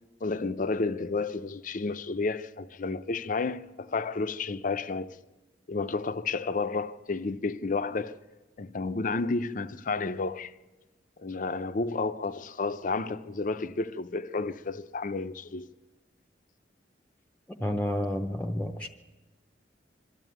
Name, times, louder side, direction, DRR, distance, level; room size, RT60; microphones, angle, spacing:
voice 1, 0.2-5.2 5.7-8.1 8.6-10.5 11.2-15.7, left 3 dB, 50° left, 0.6 m, -31 dB
voice 2, 17.5-18.9, left 1 dB, 10° left, 0.8 m, -30 dB
23.5 x 13.0 x 9.3 m
head